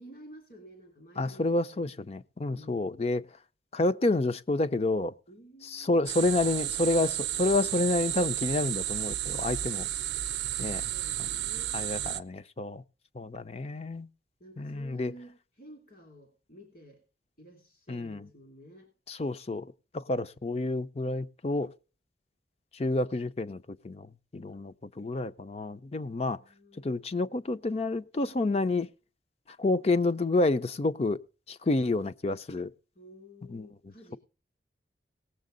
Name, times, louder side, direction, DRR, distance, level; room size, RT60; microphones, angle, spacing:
voice 1, 0.0-1.9 2.5-2.9 5.3-6.1 10.8-11.8 14.4-17.0 17.4-18.9 26.0-27.0 32.9-34.2, right 1 dB, 50° left, 2.7 m, -52 dB
voice 2, 1.2-3.3 3.7-5.1 5.7-9.9 10.6-10.9 11.2-11.3 11.7-12.8 13.1-14.1 14.6-15.1 17.9-18.3 19.1-19.7 19.9-21.7 22.7-24.1 24.3-26.4 26.8-28.9 29.6-31.2 31.5-32.7 33.5-33.7, left 2 dB, 35° left, 0.5 m, -29 dB
sound 1, 6.1-12.2, right 13 dB, 75° right, 0.6 m, -32 dB
18.0 x 7.3 x 3.8 m
head